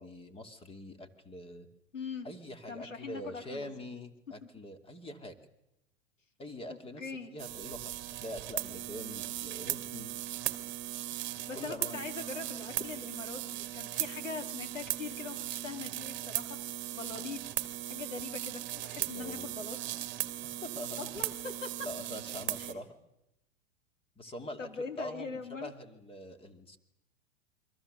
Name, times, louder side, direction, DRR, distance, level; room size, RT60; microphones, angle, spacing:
voice 1, 0.0-1.7 2.2-5.4 6.4-10.1 11.5-12.0 19.0-19.5 20.4-21.1 21.8-22.9 24.2-26.8, left 1 dB, 15° left, 7 dB, 2.7 m, -44 dB
voice 2, 1.9-2.3 2.7-3.7 6.7-7.3 11.5-19.8 21.0-21.7 24.6-25.7, left 5 dB, 75° left, 4 dB, 3.4 m, -42 dB
sound 1, 7.4-22.7, right 14 dB, 30° right, 2.0 m, -38 dB
27.5 x 24.5 x 6.8 m, 0.88 s
figure-of-eight pair, 100°, 38 cm